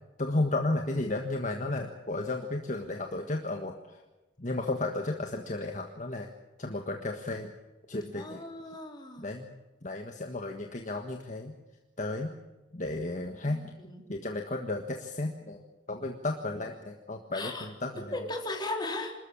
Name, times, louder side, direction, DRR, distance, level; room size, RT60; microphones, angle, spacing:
voice 1, 0.2-4.0 4.4-6.3 6.6-7.5 7.9-8.4 9.2-9.5 9.8-11.6 12.0-12.3 12.7-13.7 14.1-15.6 15.9-18.1, left 2 dB, 40° left, 3 dB, 1.6 m, -33 dB
voice 2, 8.1-9.3 13.5-14.0 17.3-17.7 18.1-19.1, left 2 dB, 25° left, 2 dB, 3.6 m, -37 dB
26.0 x 13.5 x 8.7 m, 1.1 s
head